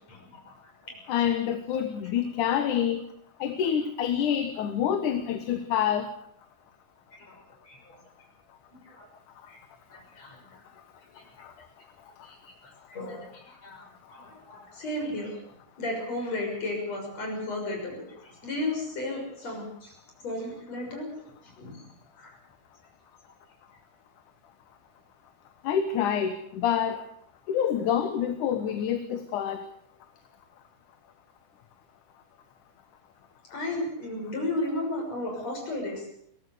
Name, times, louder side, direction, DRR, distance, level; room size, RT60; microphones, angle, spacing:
voice 1, 0.1-0.5 0.8-1.0 1.2-1.4 2.6-2.7 7.1-7.3 7.6-8.0 8.9-9.1 9.5-9.6 9.9-10.4 11.2-11.3 12.2-12.4 12.6-15.4 15.8-20.0 20.2-21.8 22.2-22.4 33.5-36.1, left 2 dB, 55° left, 1 dB, 7.6 m, -34 dB
voice 2, 1.1-3.0 3.4-6.1 11.4-11.5 25.6-27.0 27.5-29.6, left 9 dB, 80° left, 8 dB, 2.8 m, -27 dB
23.0 x 17.5 x 6.7 m, 0.70 s
omnidirectional pair, 3.6 m